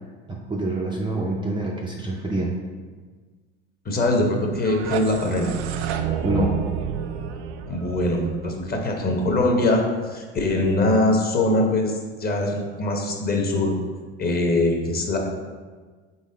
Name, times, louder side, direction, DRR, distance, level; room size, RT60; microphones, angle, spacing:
voice 1, 0.3-2.6 6.2-6.6, right 1 dB, 15° right, -2 dB, 0.4 m, -26 dB
voice 2, 3.8-5.5 7.7-9.8 10.1-13.7 14.2-15.2, left 2 dB, 25° left, 1 dB, 0.9 m, -22 dB
sound 1, 4.5-9.4, right 7 dB, 70° right, 0.5 m, -30 dB
4.1 x 3.3 x 3.8 m, 1.4 s
hypercardioid pair, 85°, 35 cm